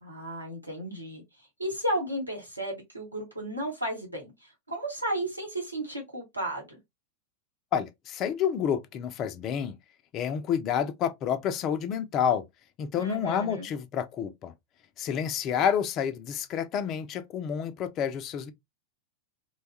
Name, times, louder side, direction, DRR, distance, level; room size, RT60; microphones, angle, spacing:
voice 1, 0.0-1.2 1.6-6.8 13.0-13.7, right 1 dB, 85° right, 1.2 m, -34 dB
voice 2, 7.7-9.8 10.1-12.4 12.8-14.5 15.0-18.5, left 8 dB, 35° left, 0.4 m, -29 dB
3.0 x 2.2 x 2.7 m
figure-of-eight pair, 90°, 0 cm